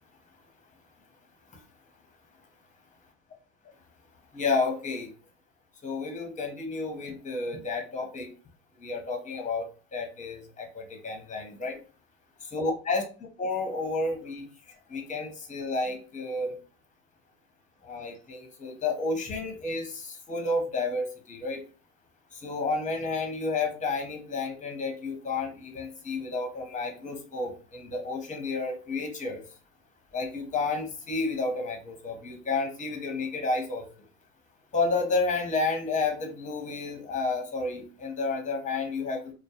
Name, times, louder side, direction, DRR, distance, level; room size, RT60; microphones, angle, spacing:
voice 1, 4.3-5.1 5.8-8.3 8.8-11.8 12.4-13.0 13.4-14.5 14.9-16.6 17.8-21.6 22.3-29.4 30.1-33.9 34.7-39.3, left 3 dB, 20° left, 3 dB, 0.7 m, -31 dB
2.2 x 2.0 x 2.8 m, 0.36 s
hypercardioid pair, 90°, 41 cm